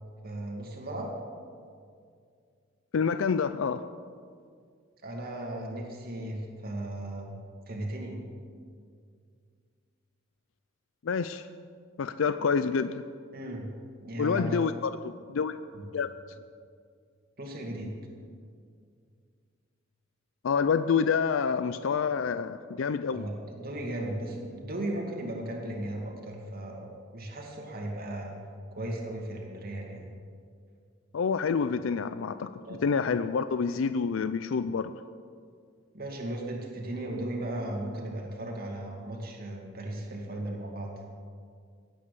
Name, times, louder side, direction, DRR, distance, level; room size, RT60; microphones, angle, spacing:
voice 1, 0.2-1.1 5.0-7.4 7.7-8.2 13.3-13.7 14.0-14.6 15.7-15.9 17.4-17.9 23.1-26.9 27.1-28.3 28.7-30.0 32.7-32.8 35.9-40.9, right 1 dB, 50° right, 0 dB, 2.2 m, -36 dB
voice 2, 2.9-3.9 11.0-11.5 12.0-13.0 14.2-15.6 15.9-16.1 20.4-23.2 31.1-34.9, left 5 dB, 70° left, 12 dB, 0.4 m, -28 dB
17.0 x 8.8 x 6.9 m, 2.2 s
head